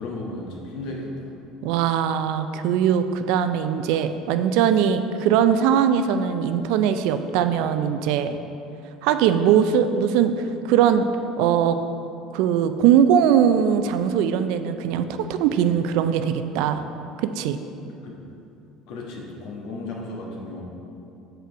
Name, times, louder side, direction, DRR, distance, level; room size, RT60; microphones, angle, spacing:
voice 1, 0.0-1.3 18.0-18.2 18.9-20.6, left 2 dB, 70° left, -1 dB, 1.3 m, -34 dB
voice 2, 1.6-8.4 9.0-11.1 11.4-11.8 12.3-16.8 17.2-17.6, right 8 dB, 75° right, 9 dB, 0.3 m, -21 dB
6.4 x 4.8 x 4.5 m, 2.7 s
supercardioid pair, 95°, 0 cm